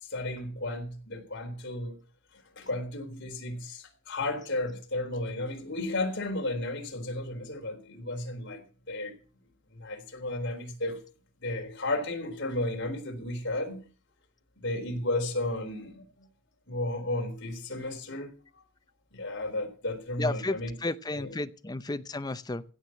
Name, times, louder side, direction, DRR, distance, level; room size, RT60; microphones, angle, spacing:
voice 1, 0.0-2.0 2.6-9.1 9.7-11.0 11.4-13.8 14.6-16.3 16.7-18.4 19.1-20.7 21.1-21.4, left 2 dB, 55° left, 3.8 m, -33 dB
voice 2, 20.2-22.6, left 2 dB, 20° left, 0.6 m, -33 dB
16.0 x 6.3 x 7.2 m
head